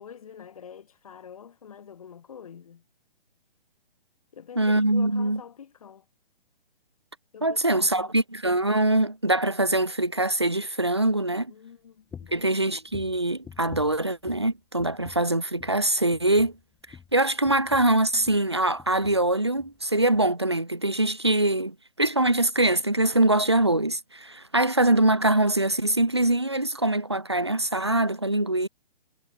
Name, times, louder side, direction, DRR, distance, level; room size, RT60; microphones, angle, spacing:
voice 1, 0.0-2.8 4.3-6.1 7.3-8.1 11.5-12.6 24.5-24.6, left 7 dB, 35° left, 2.3 m, -46 dB
voice 2, 4.6-5.4 7.4-11.5 12.3-16.5 17.1-28.7, right 1 dB, 30° right, 0.4 m, -23 dB
sound 1, 12.1-12.5 12.9-14.5 14.8-15.3 15.6-15.8 16.1-18.5 18.8-19.3 19.6-19.8 20.1-20.2, left 7 dB, 5° left, 1.1 m, -47 dB
hypercardioid pair, 175°, 30 cm